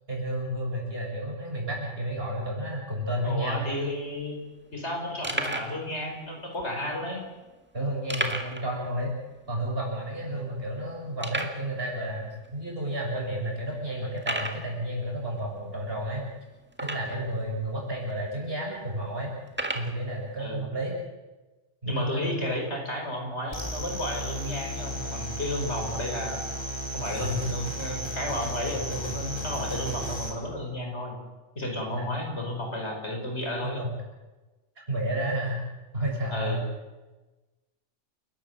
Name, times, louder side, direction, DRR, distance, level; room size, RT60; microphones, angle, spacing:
voice 1, 0.1-3.6 7.7-9.1 9.5-16.3 16.8-19.3 19.7-21.0 21.8-22.6 27.2-27.5 31.9-32.1 33.6-34.0 34.9-35.6 35.9-36.7, right 1 dB, 55° right, -2 dB, 7.3 m, -31 dB
voice 2, 3.2-4.4 4.7-7.3 10.3-10.4 17.0-17.2 20.4-20.6 21.9-26.5 26.9-31.2 31.6-33.8 36.3-36.6, left 1 dB, 70° left, 1 dB, 5.7 m, -32 dB
sound 1, 3.8-3.9 4.0-4.2 4.7-4.8 5.2-5.8 6.5-6.6 8.1-8.7 9.0-9.1 9.5-9.6 10.2-10.3 11.2-11.6 12.4-12.5 13.1-13.2 14.2-14.7 16.7-17.3 18.1-18.2 19.5-19.9, right 1 dB, 10° right, 1.8 m, -32 dB
sound 2, 23.5-30.3, equal, 20° left, 4.2 m, -34 dB
29.5 x 13.0 x 8.2 m, 1.2 s
omnidirectional pair, 1.2 m